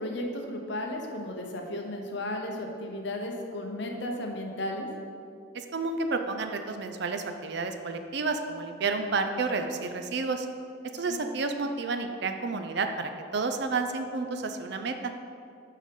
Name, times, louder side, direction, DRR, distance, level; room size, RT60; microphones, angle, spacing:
voice 1, 0.0-4.9 11.0-11.2, left 1 dB, 60° left, 2 dB, 1.0 m, -34 dB
voice 2, 5.5-10.5 10.9-15.1, right 3 dB, 55° right, 6 dB, 0.5 m, -30 dB
6.3 x 5.8 x 5.3 m, 2.4 s
head